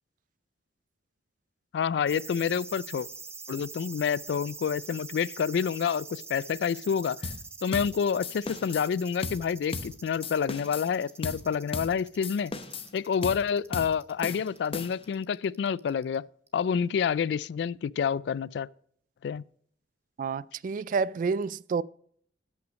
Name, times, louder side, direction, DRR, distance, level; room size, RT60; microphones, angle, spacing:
voice 1, 1.7-3.1 3.5-7.2 7.6-12.5 12.9-16.2 16.5-18.7 19.2-19.4, left 7 dB, 75° left, 0.3 m, -28 dB
sound 1, 2.1-16.2 16.5-16.6, right 4 dB, 15° right, 0.9 m, -45 dB
sound 2, 7.2-7.4 7.7-7.9 8.2-8.9 9.2-9.4 9.7-9.9 10.2-10.9 11.2-11.4 11.7-11.9 12.2-12.9 13.2-13.4 13.7-13.9 14.2-15.1, left 3 dB, 35° left, 0.8 m, -36 dB
voice 2, 20.2-21.8, right 5 dB, 50° right, 0.3 m, -29 dB
12.5 x 5.8 x 5.2 m
head